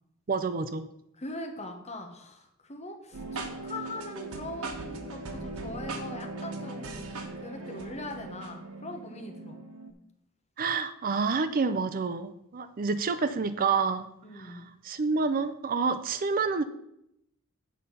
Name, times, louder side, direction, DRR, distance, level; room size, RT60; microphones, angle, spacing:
voice 1, 0.3-0.9 10.6-14.1 14.4-16.6, right 4 dB, 40° right, 12 dB, 0.5 m, -28 dB
voice 2, 1.2-7.1 7.4-9.6 14.2-14.7, left 2 dB, 30° left, 4 dB, 1.3 m, -41 dB
sound 1, 3.1-9.9, right 2 dB, 90° right, 1.2 m, -39 dB
8.6 x 5.4 x 5.6 m, 0.78 s
head